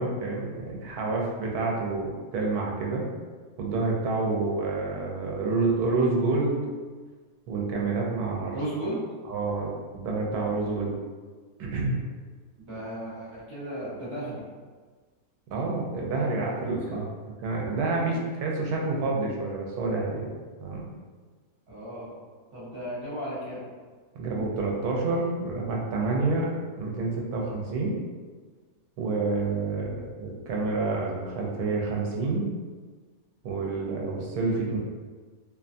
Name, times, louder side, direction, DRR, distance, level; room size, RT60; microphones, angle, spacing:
voice 1, 0.0-3.0 3.6-6.6 7.5-8.6 9.3-10.9 11.6-12.0 15.5-17.0 17.4-20.3 20.6-20.8 24.1-26.5 26.8-27.9 29.0-32.5 33.4-34.8, right 3 dB, 75° right, -2 dB, 1.0 m, -28 dB
voice 2, 8.5-9.0 12.7-14.4 16.9-17.0 21.7-22.1 22.5-23.6, right 1 dB, 50° right, -9 dB, 1.0 m, -35 dB
2.6 x 2.3 x 2.5 m, 1.5 s
omnidirectional pair, 1.7 m